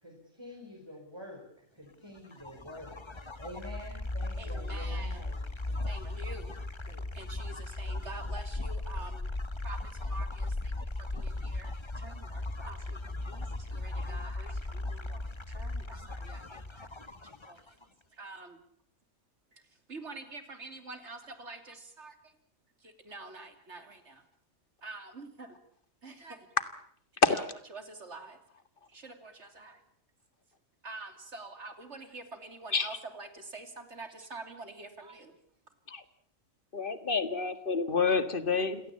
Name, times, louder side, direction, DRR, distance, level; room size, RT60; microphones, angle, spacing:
voice 1, 0.0-2.9 3.4-5.4, left 1 dB, 20° right, -1 dB, 5.5 m, -47 dB
sound 1, 2.2-17.8, left 2 dB, 25° left, 1.2 m, -37 dB
voice 2, 4.4-5.2 5.9-6.6 6.9-9.3 9.6-10.7 11.1-16.9 17.5-17.8 18.1-18.6 19.5-19.6 19.9-22.3 22.8-24.2 24.8-25.6 26.0-26.5 27.1-27.4 27.7-28.4 28.9-29.8 30.8-35.3, right 3 dB, 60° right, 8 dB, 3.4 m, -47 dB
voice 3, 36.7-38.8, left 4 dB, 45° left, 12 dB, 1.9 m, -28 dB
28.0 x 17.0 x 8.6 m, 0.65 s
omnidirectional pair, 1.3 m